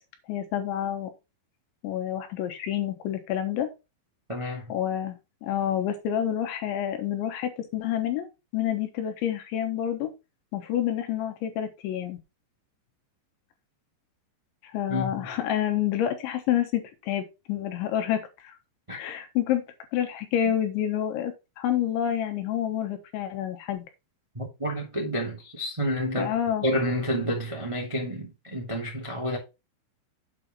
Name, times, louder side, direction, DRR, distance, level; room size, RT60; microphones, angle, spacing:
voice 1, 0.3-1.1 1.8-3.7 4.7-8.3 8.5-10.1 10.5-12.2 14.6-18.5 19.0-19.6 19.9-23.9 26.2-26.7, left 10 dB, 75° left, 3.4 m, -28 dB
voice 2, 4.3-4.8 14.9-15.3 18.9-19.0 20.4-20.5 24.3-29.4, equal, 35° right, 0.5 m, -30 dB
8.3 x 5.7 x 4.3 m
omnidirectional pair, 5.7 m